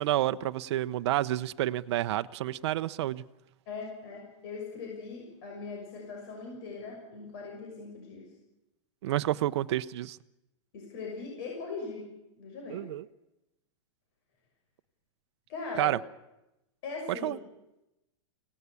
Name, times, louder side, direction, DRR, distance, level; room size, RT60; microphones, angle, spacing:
voice 1, 0.0-3.2 9.0-10.2 12.7-13.0 15.8-16.0 17.1-17.4, right 14 dB, 65° right, 0.8 m, -29 dB
voice 2, 3.7-8.3 10.7-12.9 15.5-16.0 16.8-17.3, left 4 dB, 55° left, 6.6 m, -40 dB
24.0 x 17.5 x 8.3 m
supercardioid pair, 160°, 16 cm